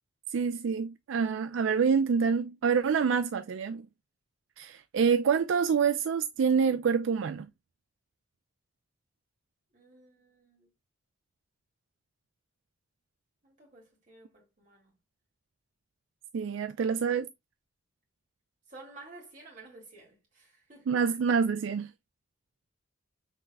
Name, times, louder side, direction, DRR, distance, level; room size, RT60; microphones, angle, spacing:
voice 1, 0.3-3.9 4.6-7.5 16.3-17.3 20.9-21.9, right 6 dB, 80° right, 0.4 m, -27 dB
voice 2, 9.7-10.7 13.4-15.0 16.8-17.1 18.7-21.0, right 2 dB, 40° right, 2.3 m, -53 dB
5.8 x 3.7 x 2.2 m
head